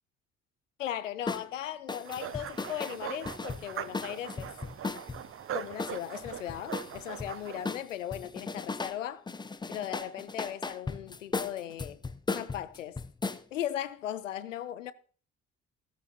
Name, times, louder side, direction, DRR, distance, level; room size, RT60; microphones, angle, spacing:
voice 1, 0.8-4.5 5.5-9.3 9.7-12.0 12.3-13.0 13.5-14.9, left 11 dB, 80° left, 0.5 m, -37 dB
sound 1, 1.3-1.5 1.9-5.2 5.8-7.3 7.6-9.0 9.3-13.4, left 3 dB, 10° left, 0.6 m, -36 dB
sound 2, 2.0-7.7, right 10 dB, 35° right, 0.7 m, -41 dB
13.5 x 13.5 x 2.9 m
figure-of-eight pair, 45°, 38 cm